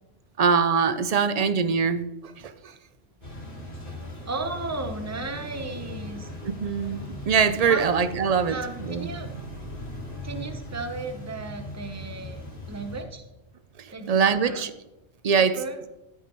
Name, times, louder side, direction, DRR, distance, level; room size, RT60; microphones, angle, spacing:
voice 1, 0.4-2.7 6.4-8.6 8.8-9.1 13.8-14.7 15.2-15.6, right 6 dB, 50° right, 12 dB, 0.5 m, -23 dB
sound 1, 3.2-13.0, left 1 dB, 50° left, 2.6 m, -39 dB
voice 2, 4.3-6.3 7.6-7.9 8.5-9.3 10.2-13.2 13.9-14.7 15.4-15.8, right 3 dB, 15° right, 6 dB, 0.8 m, -35 dB
14.5 x 8.1 x 3.0 m, 0.94 s
omnidirectional pair, 1.2 m